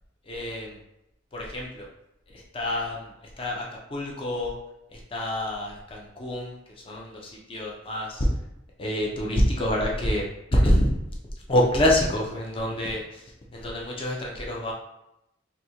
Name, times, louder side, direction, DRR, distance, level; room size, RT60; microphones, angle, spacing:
voice 1, 0.2-0.8 1.3-1.9 2.3-4.5 4.9-8.3 8.8-10.2 10.5-10.9 11.5-14.7, left 1 dB, 30° left, -3 dB, 0.6 m, -27 dB
2.7 x 2.5 x 4.2 m, 0.85 s
head